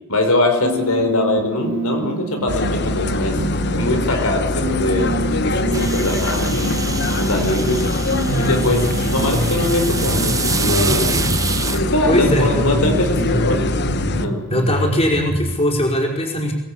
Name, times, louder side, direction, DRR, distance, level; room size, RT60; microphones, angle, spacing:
voice 1, 0.1-6.6 7.2-7.9 8.3-11.2 11.7-13.9 14.2-14.4, left 2 dB, 75° left, 4 dB, 4.9 m, -22 dB
sound 1, 0.6-3.9 4.6-11.6 12.1-15.6, right 1 dB, 85° right, 3.5 m, -26 dB
sound 2, 2.5-14.3, left 2 dB, 50° left, 1.3 m, -23 dB
sound 3, 5.7-11.8, right 5 dB, 15° right, 1.2 m, -27 dB
voice 2, 12.1-12.7 14.5-16.5, left 1 dB, 25° left, 0 dB, 5.2 m, -20 dB
25.5 x 19.0 x 8.8 m, 1.0 s
head